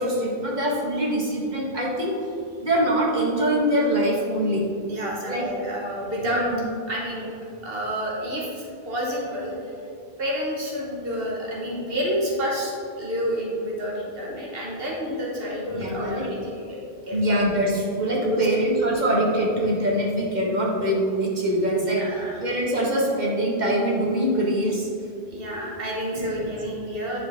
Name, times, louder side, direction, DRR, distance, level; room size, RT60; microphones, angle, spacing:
voice 1, 0.0-2.1 2.6-4.6 5.3-5.5 6.2-6.6 15.7-16.3 17.1-22.0 22.4-24.9 26.2-26.5, right 1 dB, 45° right, -3 dB, 1.5 m, -23 dB
voice 2, 4.9-6.4 6.9-7.3 7.6-9.7 10.2-12.7 13.0-16.8 17.1-17.2 17.5-17.7 18.2-18.5 22.0-22.4 25.3-27.2, equal, 65° right, -3 dB, 1.4 m, -29 dB
9.8 x 4.6 x 3.5 m, 2.5 s
omnidirectional pair, 1.0 m